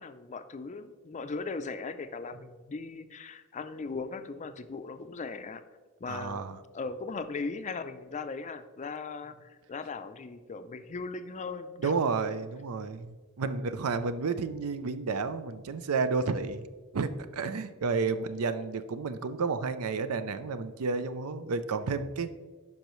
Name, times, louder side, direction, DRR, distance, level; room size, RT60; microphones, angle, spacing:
voice 1, 0.0-5.6 6.0-6.4 6.7-12.0 12.8-12.9 13.4-13.6, left 4 dB, 35° left, 10 dB, 0.4 m, -38 dB
voice 2, 6.1-6.6 11.8-16.6 16.9-22.3, right 4 dB, 80° right, 11 dB, 0.5 m, -31 dB
10.0 x 5.4 x 3.1 m, 1.4 s
head